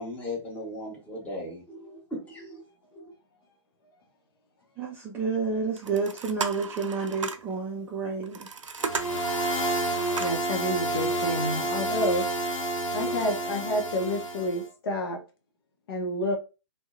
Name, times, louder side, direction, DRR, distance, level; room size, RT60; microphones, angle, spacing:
voice 1, 0.0-2.6 2.9-3.1, left 1 dB, 10° left, 1.0 m, -37 dB
voice 2, 4.8-8.5, right 5 dB, 15° right, 0.3 m, -30 dB
sound 1, 5.8-7.5 8.2-10.5, right 5 dB, 80° right, 0.4 m, -35 dB
sound 2, 8.8-14.6, right 1 dB, 85° left, 0.6 m, -29 dB
voice 3, 10.2-12.3 12.9-15.2 15.9-16.4, left 1 dB, 50° left, 0.6 m, -29 dB
2.5 x 2.0 x 2.4 m
figure-of-eight pair, 120°, 16 cm